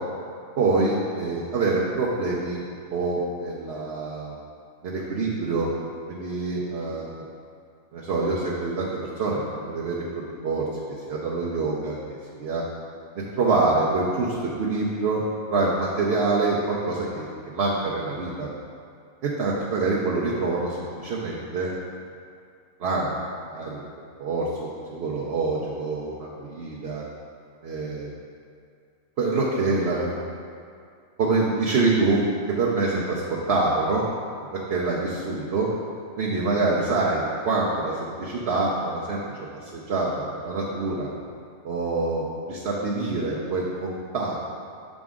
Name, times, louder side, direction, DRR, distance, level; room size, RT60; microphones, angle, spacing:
voice 1, 0.6-4.3 4.8-5.7 6.1-7.2 7.9-10.0 10.4-10.6 11.1-12.6 13.4-15.2 15.5-18.5 19.2-21.7 22.8-23.2 23.5-23.8 24.2-27.0 27.6-28.1 29.2-30.2 31.2-34.1 34.7-35.7 36.2-41.1 41.6-44.6, right 3 dB, 55° right, -5 dB, 0.9 m, -26 dB
7.1 x 5.1 x 3.7 m, 2.3 s
omnidirectional pair, 1.5 m